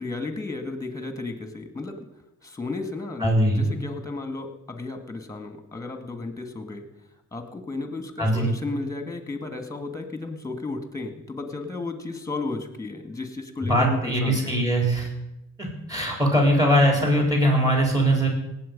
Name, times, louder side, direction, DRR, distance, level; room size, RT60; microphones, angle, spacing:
voice 1, 0.0-2.1 2.4-6.9 7.3-14.6, left 3 dB, 10° left, 6 dB, 2.0 m, -33 dB
voice 2, 3.2-3.9 8.2-8.5 13.7-15.1 15.6-18.3, equal, 10° right, 0 dB, 4.2 m, -21 dB
18.0 x 8.0 x 5.4 m, 0.89 s
cardioid pair, 90°, 30 cm